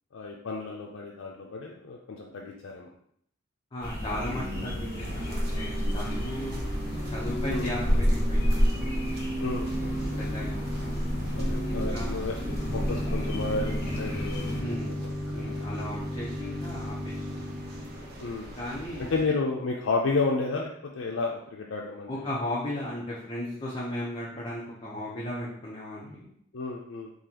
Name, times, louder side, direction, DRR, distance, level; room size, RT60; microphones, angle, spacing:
voice 1, 0.1-2.9 7.5-7.7 9.4-9.7 11.3-12.4 12.7-14.5 14.8-15.9 18.2-18.5 19.1-22.3 26.5-27.1, left 3 dB, 85° left, -1 dB, 0.4 m, -32 dB
voice 2, 3.7-6.6 7.1-8.7 9.9-10.9 11.6-12.3 14.6-14.9 15.3-17.5 18.5-19.1 22.1-26.3, left 1 dB, 25° left, -7 dB, 0.6 m, -36 dB
sound 1, 3.8-14.6, equal, 55° left, 0.9 m, -30 dB
Organ / Church bell, 4.0-18.2, equal, 70° right, 1.3 m, -35 dB
sound 2, 5.0-19.2, right 1 dB, 55° right, 0.7 m, -43 dB
3.9 x 2.8 x 2.8 m, 0.68 s
head